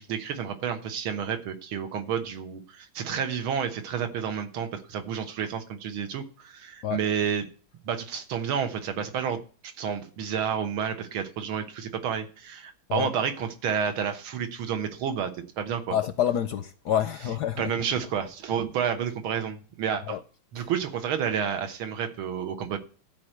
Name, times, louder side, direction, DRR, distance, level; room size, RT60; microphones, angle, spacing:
voice 1, 0.0-7.5 7.8-16.0 17.6-20.2 20.5-22.8, right 7 dB, 80° right, 2.0 m, -30 dB
voice 2, 15.9-17.7 20.1-20.2 20.6-20.7, left 10 dB, 70° left, 1.0 m, -27 dB
13.5 x 4.5 x 7.8 m
omnidirectional pair, 2.3 m